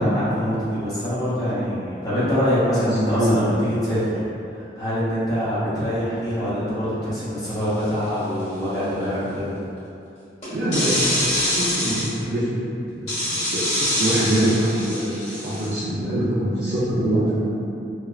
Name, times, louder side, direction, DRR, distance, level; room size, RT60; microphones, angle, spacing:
voice 1, 0.0-9.5 16.0-16.1, equal, 20° left, -11 dB, 0.7 m, -24 dB
voice 2, 3.0-3.4 10.5-15.1 15.4-17.6, right 1 dB, 55° right, -11 dB, 0.5 m, -24 dB
sound 1, 7.8-8.1 10.4-12.1 13.1-15.7, left 1 dB, 40° left, 1.1 m, -25 dB
3.1 x 2.0 x 2.3 m, 2.6 s
head